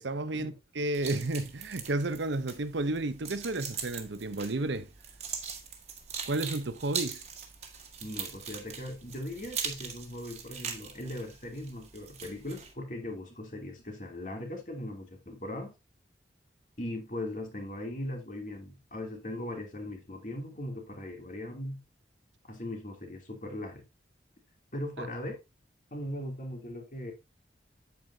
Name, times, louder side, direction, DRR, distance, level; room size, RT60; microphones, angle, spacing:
voice 1, 0.0-4.9 6.3-7.2 25.0-25.1, right 2 dB, 75° right, 0.8 m, -32 dB
sound 1, 0.9-12.7, right 7 dB, 35° right, 1.8 m, -41 dB
voice 2, 8.0-15.7 16.8-21.8 22.5-23.8 24.7-25.4 25.9-27.1, left 1 dB, 45° left, 2.8 m, -39 dB
8.9 x 8.5 x 2.7 m
head